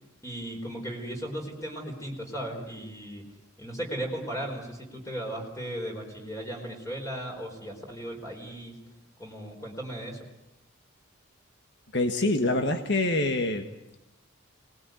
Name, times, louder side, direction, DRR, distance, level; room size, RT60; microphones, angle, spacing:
voice 1, 0.2-3.2 3.6-8.8 9.2-10.3, right 1 dB, 15° left, 1 dB, 4.6 m, -36 dB
voice 2, 11.9-13.6, left 2 dB, 55° left, 6 dB, 1.7 m, -25 dB
27.5 x 20.5 x 9.4 m, 0.90 s
head